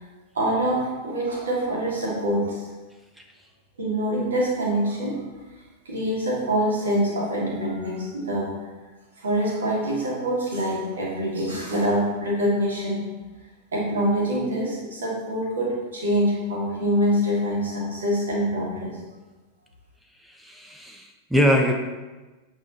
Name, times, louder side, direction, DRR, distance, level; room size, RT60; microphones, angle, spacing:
voice 1, 0.3-2.7 3.8-5.2 5.8-8.5 9.2-13.1 13.7-19.0, equal, 70° right, -4 dB, 2.6 m, -25 dB
voice 2, 20.2-21.7, equal, 5° right, 2 dB, 0.8 m, -23 dB
8.6 x 5.4 x 4.1 m, 1.2 s
figure-of-eight pair, 90°, 0 cm